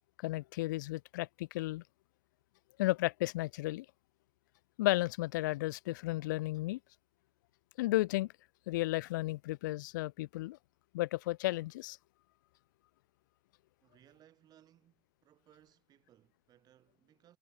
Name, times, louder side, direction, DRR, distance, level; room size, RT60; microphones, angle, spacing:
voice 1, 0.2-1.8 2.8-3.9 4.8-6.8 7.8-8.3 8.7-10.6 10.9-12.0, left 18 dB, 85° left, 0.6 m, -33 dB
voice 2, 13.8-17.4, right 11 dB, 40° right, 4.1 m, -65 dB
supercardioid pair, 115°, 10 cm